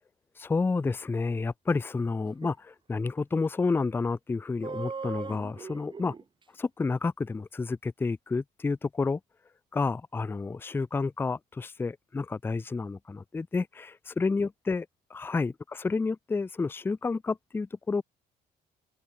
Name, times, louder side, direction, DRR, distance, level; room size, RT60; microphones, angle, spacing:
voice 1, 0.4-6.1 6.6-9.2 9.7-14.9 15.1-15.5 15.8-18.0, left 4 dB, 15° left, 0.4 m, -30 dB
sound 1, 2.2-2.5 4.6-6.2, right 5 dB, 30° right, 4.1 m, -39 dB
open air
cardioid pair, 110°, 17 cm